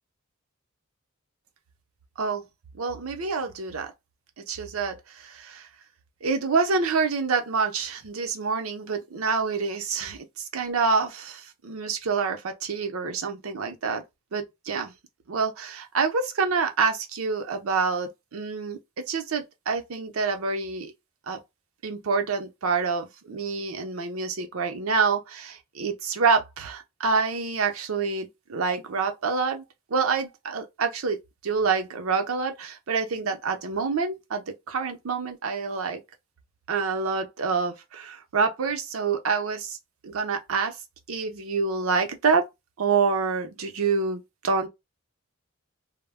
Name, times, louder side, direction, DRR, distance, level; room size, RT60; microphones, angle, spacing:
voice 1, 2.8-3.9 4.5-5.7 6.2-14.0 14.3-14.9 15.3-20.9 21.3-21.4 21.8-29.6 29.9-31.2 31.4-36.0 36.7-39.8 40.0-40.7 41.1-42.4 42.8-44.7, right 5 dB, 80° right, 0.6 m, -27 dB
2.1 x 2.1 x 3.4 m
head